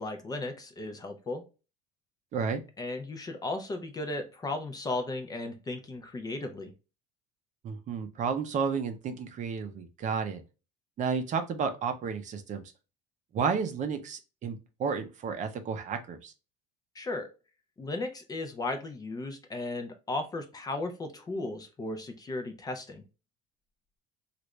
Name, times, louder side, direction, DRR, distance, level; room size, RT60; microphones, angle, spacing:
voice 1, 0.0-1.4 2.8-6.7 16.9-17.3 17.8-23.0, left 2 dB, 20° left, 6 dB, 0.6 m, -35 dB
voice 2, 7.6-10.4 11.0-12.6 13.3-16.3, right 5 dB, 40° right, 7 dB, 0.6 m, -32 dB
3.1 x 2.5 x 3.0 m, 0.30 s
cardioid pair, 140°, 19 cm